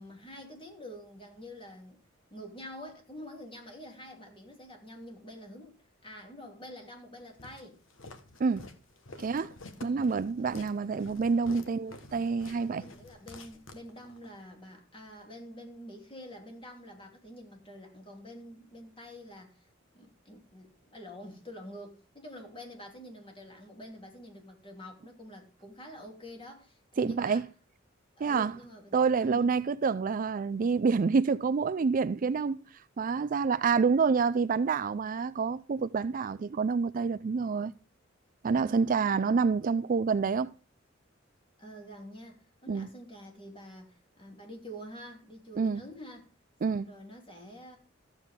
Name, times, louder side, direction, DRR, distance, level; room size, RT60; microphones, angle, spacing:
voice 1, 0.0-2.0 2.3-7.8 9.8-10.1 10.4-10.6 12.6-19.7 19.9-27.4 28.2-29.7 38.6-39.4 41.6-46.3 46.7-47.8, equal, 25° left, 3.0 m, -47 dB
Walk footsteps, 7.4-14.3, left 2 dB, 80° left, 1.4 m, -49 dB
voice 2, 9.2-9.5 9.8-12.8 27.0-27.5 28.2-28.5 28.9-32.6 33.0-37.7 38.4-40.5 42.7-42.9 45.6-45.8 46.6-46.9, right 5 dB, 45° right, 0.4 m, -27 dB
13.5 x 7.6 x 3.6 m
head